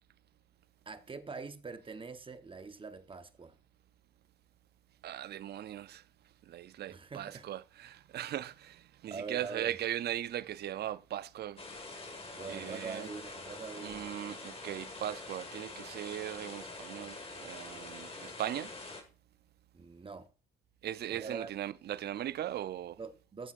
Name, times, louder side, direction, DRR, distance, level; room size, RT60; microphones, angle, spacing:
voice 1, 0.9-3.5 6.9-7.5 9.1-9.7 12.4-14.1 19.7-20.3 21.1-21.5 23.0-23.5, right 4 dB, 25° right, 1.0 m, -43 dB
voice 2, 5.0-6.0 6.5-11.6 12.5-13.1 13.8-18.7 20.8-23.0, right 12 dB, 50° right, 0.5 m, -39 dB
sound 1, 11.6-19.0, left 3 dB, 25° left, 1.9 m, -45 dB
14.0 x 7.1 x 2.5 m
cardioid pair, 90°, 21 cm